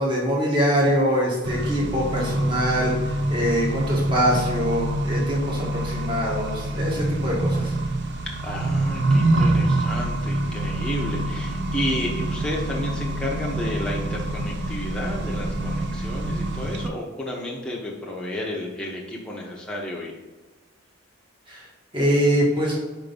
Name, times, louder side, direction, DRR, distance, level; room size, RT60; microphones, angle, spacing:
voice 1, 0.0-7.8 21.5-21.6 21.9-22.7, equal, 25° right, -5 dB, 1.6 m, -23 dB
Accelerating revving vroom, 1.4-16.9, right 1 dB, 55° right, 0.6 m, -26 dB
voice 2, 8.3-20.2, left 1 dB, 5° left, -4 dB, 1.1 m, -32 dB
5.2 x 3.8 x 5.3 m, 1.2 s
head